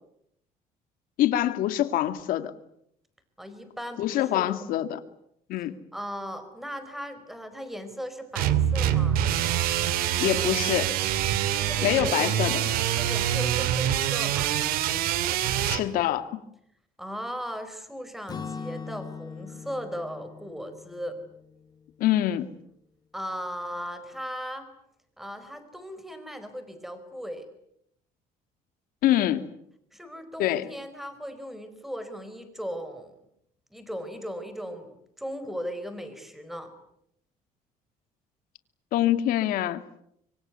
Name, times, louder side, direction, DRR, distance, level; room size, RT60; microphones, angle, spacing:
voice 1, 1.2-2.5 4.0-5.0 5.5-5.8 10.2-10.9 11.8-12.6 15.6-16.3 22.0-22.5 29.0-29.4 30.4-30.7 38.9-39.8, left 12 dB, 75° left, 10 dB, 2.4 m, -25 dB
voice 2, 3.4-4.5 5.9-9.2 11.6-12.3 12.9-14.6 17.0-21.2 23.1-24.6 25.2-27.5 29.9-33.1 33.7-36.7, equal, ahead, 10 dB, 4.6 m, -37 dB
sound 1, 8.4-15.8, right 11 dB, 80° right, 2.5 m, -25 dB
Acoustic guitar / Strum, 18.3-22.2, left 5 dB, 25° left, 2.9 m, -41 dB
25.0 x 25.0 x 9.4 m, 0.75 s
cardioid pair, 155°, 15 cm